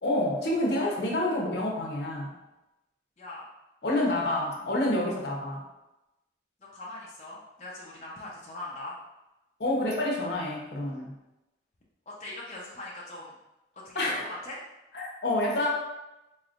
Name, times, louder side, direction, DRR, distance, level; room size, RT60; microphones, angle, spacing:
voice 1, 0.0-2.3 3.8-5.6 9.6-11.1 13.9-14.3 14.9-15.7, left 1 dB, 70° left, -2 dB, 0.8 m, -28 dB
voice 2, 6.7-8.9 12.1-13.3 13.8-14.6, left 2 dB, 40° left, -6 dB, 0.6 m, -41 dB
4.1 x 3.2 x 2.5 m, 0.97 s
head